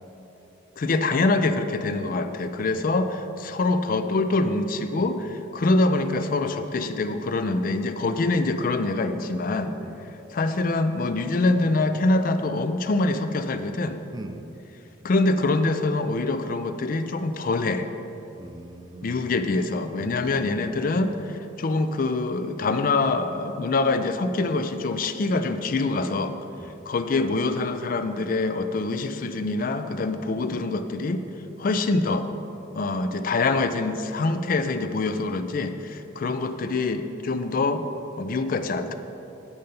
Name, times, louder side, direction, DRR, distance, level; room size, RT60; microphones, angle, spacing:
voice 1, 0.8-9.8 10.3-14.0 15.0-17.9 19.0-26.4 26.9-31.2 31.6-32.3 32.7-37.9 38.2-38.9, left 3 dB, 45° left, 9 dB, 0.4 m, -25 dB
voice 2, 14.1-14.5 18.4-19.3 19.9-20.8 26.6-26.7, right 1 dB, 20° right, 7 dB, 0.4 m, -41 dB
9.5 x 5.5 x 5.2 m, 2.9 s
head